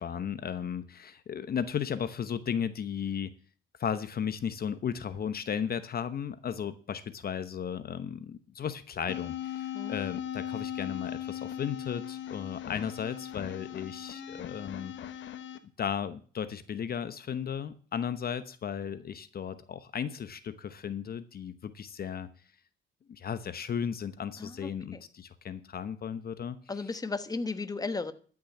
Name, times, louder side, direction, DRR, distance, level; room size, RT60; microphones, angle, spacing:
voice 1, 0.0-3.3 3.8-15.2 15.8-22.3 23.1-26.6, left 8 dB, 50° left, 12 dB, 0.9 m, -35 dB
sound 1, 9.1-15.6, left 10 dB, 70° left, 1.2 m, -38 dB
voice 2, 24.4-25.0 26.7-28.1, left 3 dB, 20° left, 11 dB, 1.1 m, -35 dB
13.0 x 6.3 x 7.3 m, 0.43 s
cardioid pair, 90°, 20 cm